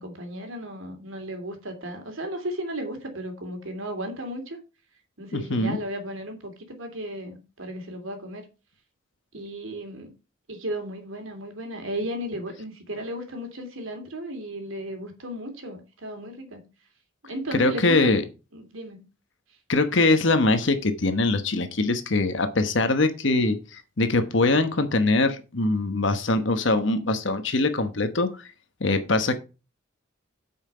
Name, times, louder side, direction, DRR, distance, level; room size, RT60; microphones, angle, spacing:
voice 1, 0.0-4.6 5.2-8.5 9.3-10.1 10.5-16.6 17.2-18.1 18.5-19.0, right 1 dB, 80° right, 5 dB, 2.8 m, -35 dB
voice 2, 5.3-5.8 17.5-18.2 19.7-28.4 28.8-29.4, left 2 dB, 65° left, 8 dB, 1.1 m, -23 dB
8.8 x 5.8 x 5.6 m, 0.31 s
head